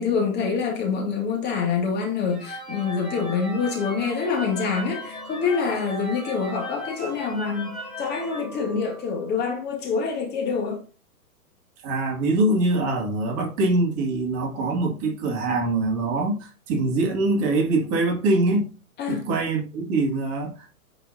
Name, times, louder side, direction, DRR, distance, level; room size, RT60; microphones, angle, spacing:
voice 1, 0.0-10.8 19.0-19.3, left 5 dB, 25° left, 2.0 m, -26 dB
sound 1, 2.3-9.3, right 1 dB, ahead, 3.6 m, -37 dB
voice 2, 11.8-18.7 19.1-20.7, right 2 dB, 30° right, 2.0 m, -23 dB
9.8 x 4.9 x 2.6 m
hypercardioid pair, 125°, 44 cm